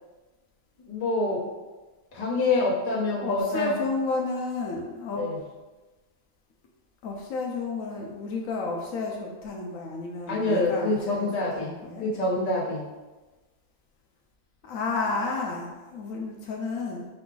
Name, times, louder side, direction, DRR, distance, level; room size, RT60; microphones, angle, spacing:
voice 1, 0.8-1.4 2.1-3.8 5.2-5.4 10.3-11.7 12.0-12.9, left 2 dB, 30° left, -7 dB, 1.1 m, -26 dB
voice 2, 3.2-5.3 7.0-11.3 11.6-12.1 14.6-17.1, left 3 dB, 80° left, 0 dB, 1.0 m, -31 dB
4.8 x 2.3 x 3.7 m, 1.2 s
omnidirectional pair, 1.4 m